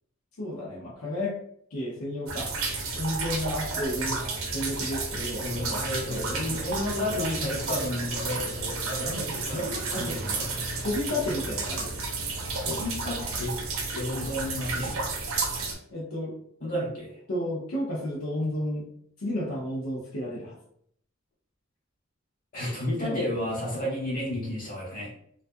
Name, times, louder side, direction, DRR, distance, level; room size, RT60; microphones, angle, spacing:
voice 1, 0.4-1.4 1.7-2.5 2.9-4.2 4.5-6.3 9.9-10.2 10.8-12.0 15.9-16.4 17.3-18.9 19.2-20.6 23.0-23.3, left 1 dB, 90° left, -4 dB, 0.7 m, -32 dB
sound 1, 2.3-15.7, right 3 dB, 75° right, 0.5 m, -32 dB
voice 2, 5.4-10.4 12.6-13.5 13.9-14.9 16.6-17.1 22.5-25.1, left 1 dB, 45° left, -5 dB, 1.2 m, -32 dB
2.3 x 2.3 x 2.5 m, 0.67 s
head